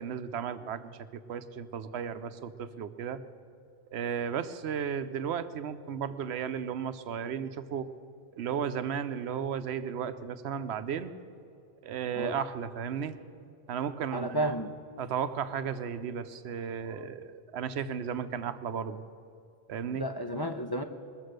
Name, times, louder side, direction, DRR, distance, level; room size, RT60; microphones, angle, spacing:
voice 1, 0.0-3.3 3.9-7.9 8.4-11.1 11.8-13.2 13.7-14.5 15.0-19.0 19.7-20.1, right 7 dB, 85° right, 12 dB, 0.9 m, -34 dB
voice 2, 14.1-14.7 19.9-20.8, right 1 dB, 30° left, 6 dB, 0.6 m, -32 dB
21.0 x 7.4 x 6.5 m, 2.6 s
omnidirectional pair, 1.1 m